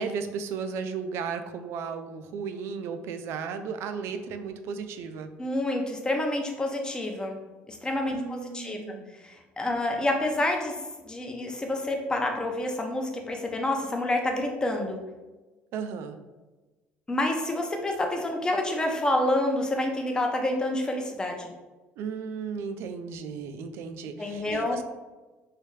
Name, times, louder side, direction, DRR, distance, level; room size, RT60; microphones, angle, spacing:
voice 1, 0.0-5.3 8.1-9.1 15.7-16.2 22.0-24.8, right 6 dB, 70° right, 8 dB, 0.3 m, -35 dB
voice 2, 5.4-7.4 7.7-8.8 9.2-10.7 11.0-15.0 17.1-21.5 24.2-24.8, left 1 dB, 15° left, 3 dB, 0.5 m, -28 dB
3.2 x 2.7 x 3.1 m, 1.2 s
cardioid pair, 115°, 5 cm